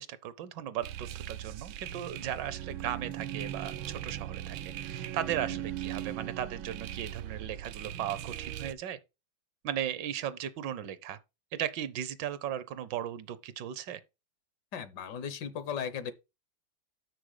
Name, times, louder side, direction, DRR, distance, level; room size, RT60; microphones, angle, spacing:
voice 1, 0.0-9.0 9.6-11.2 11.5-14.0, right 10 dB, 70° right, 1.3 m, -36 dB
sound 1, 0.8-8.7, right 11 dB, 90° right, 1.4 m, -39 dB
voice 2, 14.7-16.1, left 7 dB, 65° left, 1.3 m, -36 dB
6.8 x 6.3 x 4.8 m
omnidirectional pair, 2.1 m